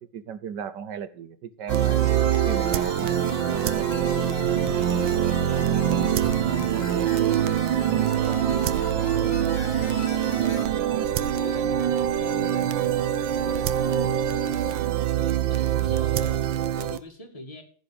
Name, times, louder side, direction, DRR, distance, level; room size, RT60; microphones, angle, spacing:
voice 1, 0.0-2.0 2.4-3.1, right 7 dB, 70° right, 1.5 m, -35 dB
sound 1, 1.7-10.7, left 5 dB, 45° left, 1.5 m, -38 dB
sound 2, 1.7-17.0, right 11 dB, 85° right, 1.5 m, -24 dB
voice 2, 4.1-6.5 6.9-8.7 9.0-13.0 13.3-14.8 15.2-17.6, left 1 dB, 20° left, 2.3 m, -43 dB
15.0 x 5.0 x 8.8 m
omnidirectional pair, 2.0 m